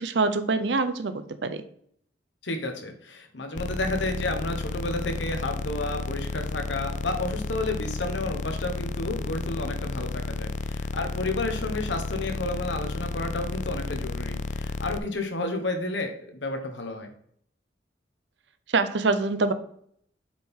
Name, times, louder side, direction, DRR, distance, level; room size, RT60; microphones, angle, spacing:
voice 1, 0.0-1.6 18.7-19.5, right 3 dB, 70° right, 11 dB, 0.6 m, -25 dB
voice 2, 2.4-17.1, left 2 dB, 75° left, 5 dB, 1.3 m, -31 dB
sound 1, 3.5-15.0, left 3 dB, 40° left, 0.3 m, -32 dB
7.5 x 4.5 x 3.7 m, 0.65 s
head